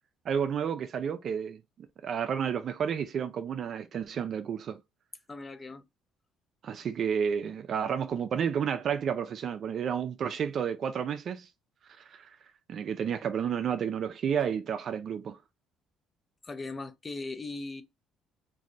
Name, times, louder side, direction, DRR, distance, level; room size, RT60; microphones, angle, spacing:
voice 1, 0.3-1.6 2.0-4.8 6.6-11.5 12.0-12.4 12.7-15.4, right 7 dB, 55° right, 0.4 m, -31 dB
voice 2, 5.3-5.8 16.4-17.8, left 3 dB, 25° left, 0.5 m, -38 dB
2.6 x 2.5 x 3.1 m
supercardioid pair, 85°, 0 cm